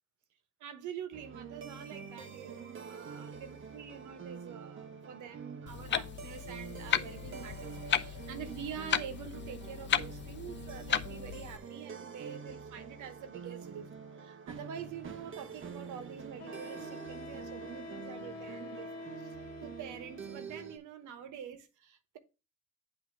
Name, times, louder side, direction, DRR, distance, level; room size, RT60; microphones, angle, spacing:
voice 1, 0.6-18.9 19.2-22.2, right 8 dB, 80° right, 1.0 m, -46 dB
sound 1, 1.1-20.8, right 6 dB, 40° right, 1.0 m, -47 dB
Clock, 5.7-11.6, left 8 dB, 40° left, 0.5 m, -35 dB
Wind instrument woodwind instrument, 16.4-20.5, left 2 dB, 55° left, 1.5 m, -46 dB
8.2 x 2.8 x 6.0 m
cardioid pair, 90°, 30 cm